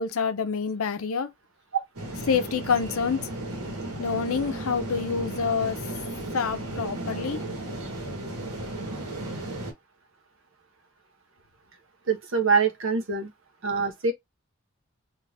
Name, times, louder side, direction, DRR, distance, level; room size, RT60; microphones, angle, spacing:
voice 1, 0.0-1.3 2.3-3.2 4.0-5.8 6.3-7.4, left 5 dB, 70° left, 0.5 m, -27 dB
sound 1, 2.0-9.7, right 1 dB, 80° right, 1.2 m, -35 dB
voice 2, 12.1-13.3 13.6-14.1, right 5 dB, 60° right, 0.8 m, -24 dB
2.6 x 2.5 x 3.3 m
head